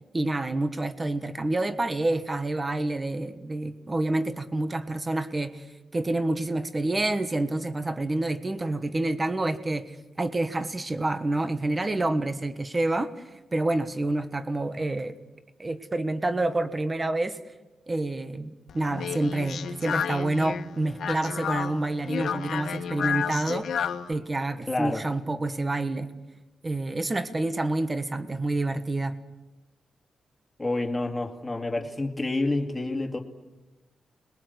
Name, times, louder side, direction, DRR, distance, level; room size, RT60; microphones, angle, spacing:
voice 1, 0.1-5.6 5.9-13.1 13.5-15.1 15.6-17.4 17.9-26.1 26.6-29.2, right 2 dB, 20° right, 10 dB, 1.3 m, -28 dB
Speech, 18.7-24.1, left 7 dB, 70° left, 1.6 m, -31 dB
voice 2, 24.7-25.0 30.6-33.2, left 2 dB, 10° left, 2 dB, 2.5 m, -28 dB
30.0 x 21.5 x 8.1 m, 1.1 s
wide cardioid pair, 175°, 0 cm